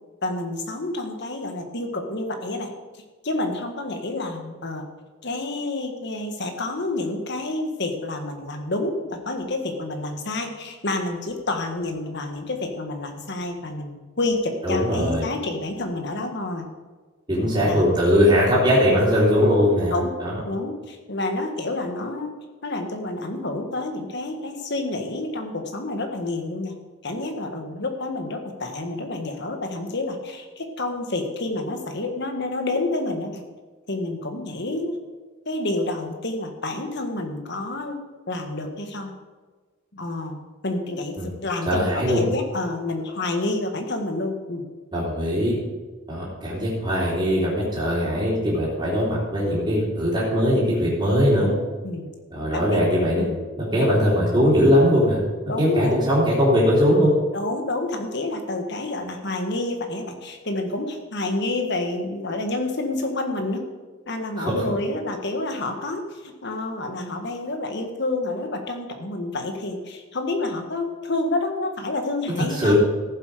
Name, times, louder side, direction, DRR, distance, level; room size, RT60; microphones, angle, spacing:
voice 1, 0.2-2.7 3.2-4.9 5.2-16.7 17.4-17.9 19.9-20.1 20.4-22.3 22.6-26.7 27.0-33.4 33.9-35.0 35.4-38.0 38.3-39.1 39.9-44.6 51.4-51.6 51.8-52.1 52.5-52.8 53.2-53.4 53.7-53.9 55.4-56.0 57.3-63.6 64.1-72.7, left 2 dB, 55° left, 5 dB, 1.5 m, -29 dB
voice 2, 14.6-15.2 17.3-19.9 20.2-20.3 41.2-41.3 41.6-42.2 44.9-45.6 46.1-51.5 52.3-53.3 53.6-55.2 55.6-57.1 64.4-64.6 72.6-72.7, equal, 20° right, -7 dB, 3.3 m, -20 dB
14.0 x 7.6 x 5.0 m, 1.4 s
head